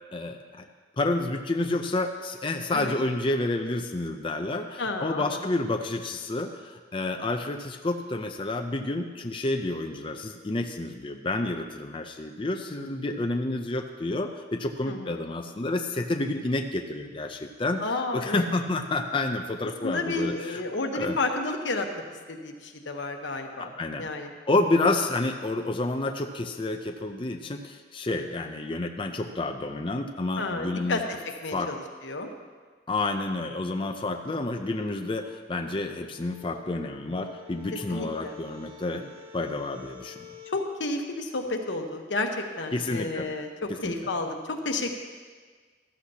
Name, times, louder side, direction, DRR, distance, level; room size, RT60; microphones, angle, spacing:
voice 1, 0.1-0.6 1.0-17.8 18.1-20.6 20.9-21.2 23.6-24.1 24.5-31.0 31.5-31.7 32.9-39.0 39.3-40.3 42.7-43.3 43.8-43.9, left 2 dB, 30° left, 4 dB, 0.5 m, -29 dB
voice 2, 4.8-5.4 14.9-15.2 17.8-18.5 19.8-21.9 22.3-23.7 24.0-24.3 30.4-31.0 31.4-32.3 37.9-38.4 38.9-39.1 40.5-44.9, left 2 dB, 90° left, 3 dB, 1.1 m, -31 dB
sound 1, 34.6-40.7, left 5 dB, 30° right, 0.9 m, -49 dB
14.0 x 13.0 x 2.9 m, 1.5 s
head